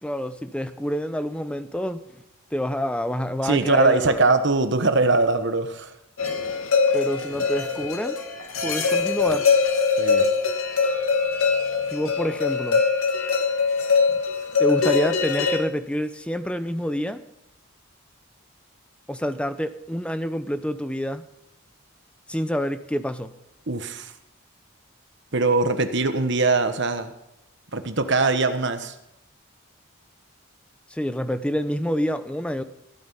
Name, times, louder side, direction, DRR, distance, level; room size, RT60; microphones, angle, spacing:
voice 1, 0.0-2.2 2.5-4.2 6.9-8.2 8.6-9.5 11.9-12.8 14.6-17.2 19.1-21.2 22.3-23.3 30.9-32.6, equal, 5° left, 11 dB, 0.7 m, -27 dB
voice 2, 3.4-5.9 10.0-10.3 23.7-24.1 25.3-27.1 27.7-28.9, right 3 dB, 55° right, 9 dB, 1.2 m, -22 dB
sound 1, 6.2-15.6, left 5 dB, 75° left, 2.2 m, -22 dB
15.5 x 9.4 x 5.5 m, 0.86 s
head